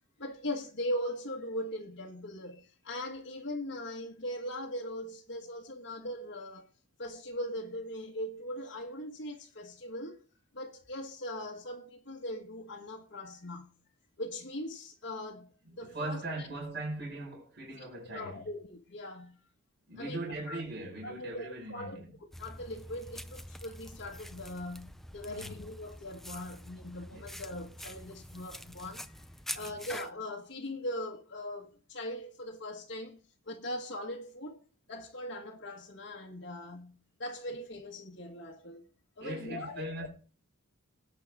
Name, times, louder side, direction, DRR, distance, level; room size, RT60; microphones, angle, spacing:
voice 1, 0.2-6.7 7.0-10.2 10.5-13.7 14.2-15.5 15.8-16.5 17.8-19.4 20.0-20.6 21.0-22.0 22.4-29.2 29.5-33.2 33.5-34.6 34.9-38.8 39.2-40.1, left 1 dB, 60° left, 1.5 m, -40 dB
voice 2, 15.6-18.5 19.9-22.1 25.3-25.6 27.1-27.3 29.5-29.8 39.2-40.1, right 2 dB, 55° right, 5.3 m, -40 dB
sound 1, 22.3-30.1, left 1 dB, ahead, 0.5 m, -46 dB
19.0 x 8.9 x 3.6 m
head